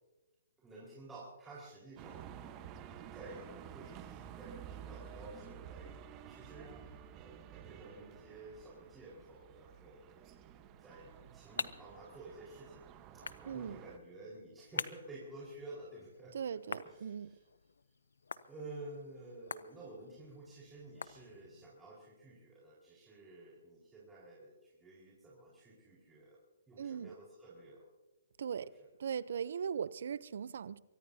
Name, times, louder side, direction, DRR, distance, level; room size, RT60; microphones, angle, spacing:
voice 1, 0.6-5.9 6.2-10.2 10.6-12.8 13.1-17.4 18.5-26.4 26.7-27.9 28.6-28.9, right 2 dB, 10° right, 4.7 m, -52 dB
sound 1, 2.0-14.0, right 9 dB, 25° right, 1.1 m, -52 dB
sound 2, 10.8-21.7, left 5 dB, 85° left, 0.7 m, -48 dB
voice 2, 13.4-13.8 16.3-17.3 26.8-27.1 28.4-28.7 29.0-30.8, right 7 dB, 65° right, 0.6 m, -39 dB
23.5 x 18.5 x 2.8 m
hypercardioid pair, 145°, 0 cm